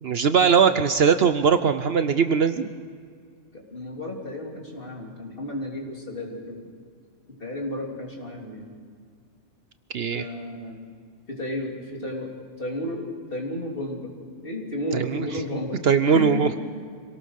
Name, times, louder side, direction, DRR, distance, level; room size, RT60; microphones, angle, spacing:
voice 1, 0.0-2.7 9.9-10.2 14.9-15.3 15.8-16.5, right 6 dB, 60° right, 11 dB, 0.9 m, -20 dB
voice 2, 3.5-6.7 7.4-8.8 10.1-10.8 11.3-12.3 12.6-14.1 14.4-16.5, left 1 dB, 45° left, -1 dB, 3.5 m, -33 dB
25.5 x 18.0 x 6.5 m, 2.1 s
omnidirectional pair, 1.3 m